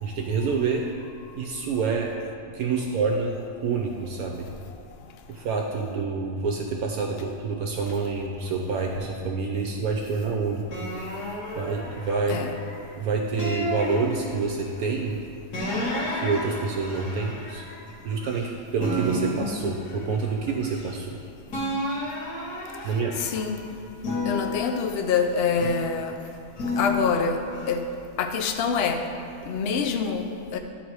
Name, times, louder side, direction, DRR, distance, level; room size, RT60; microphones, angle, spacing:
voice 1, 0.0-0.8 1.3-2.1 2.5-4.5 5.3-10.7 11.6-12.4 12.9-15.2 16.1-17.7 18.0-21.2 22.8-23.2, right 4 dB, 70° right, 1 dB, 1.0 m, -27 dB
sound 1, 10.7-12.8 13.4-14.7 15.5-18.5 18.8-21.2 21.5-23.5 24.0-26.0 26.6-27.7, left 1 dB, 85° left, 2.0 m, -32 dB
voice 2, 23.2-23.6 24.3-26.1 26.8-27.4 27.7-27.8 28.2-29.0 29.5-30.6, left 5 dB, 65° left, 5 dB, 0.6 m, -25 dB
10.5 x 4.0 x 4.7 m, 2.6 s
omnidirectional pair, 1.7 m